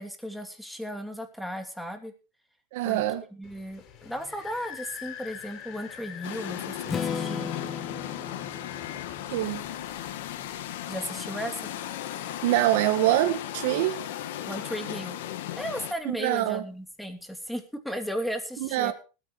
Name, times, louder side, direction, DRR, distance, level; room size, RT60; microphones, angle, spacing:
voice 1, 0.0-2.1 2.8-3.0 3.3-7.5 10.9-11.7 14.5-15.2 15.6-18.9, equal, ahead, 2.9 m, -35 dB
voice 2, 2.7-3.2 9.3-9.6 12.4-14.0 16.2-16.6 18.6-18.9, right 14 dB, 75° right, 2.1 m, -24 dB
sound 1, 3.4-10.8, left 8 dB, 50° left, 4.6 m, -46 dB
sound 2, 6.2-15.9, left 12 dB, 85° left, 1.9 m, -36 dB
Strum, 6.9-10.8, left 7 dB, 25° left, 1.2 m, -36 dB
20.0 x 8.8 x 4.9 m
supercardioid pair, 135°, 0 cm